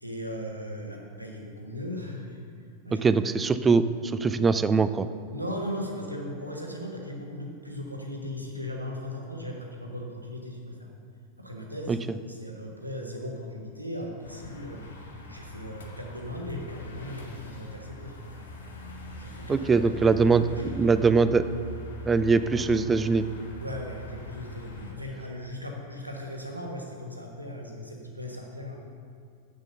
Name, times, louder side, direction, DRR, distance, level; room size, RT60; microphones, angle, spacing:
voice 1, 0.0-2.4 2.8-3.1 5.3-10.9 11.4-18.5 19.2-19.8 20.2-21.0 23.6-28.8, left 1 dB, 85° right, 0 dB, 1.3 m, -38 dB
voice 2, 2.9-5.1 19.5-21.4 22.1-23.2, right 4 dB, 15° right, 13 dB, 0.3 m, -22 dB
sound 1, 14.2-24.9, equal, 70° left, 1.2 m, -42 dB
8.0 x 6.7 x 6.9 m, 2.3 s
figure-of-eight pair, 90°, 0 cm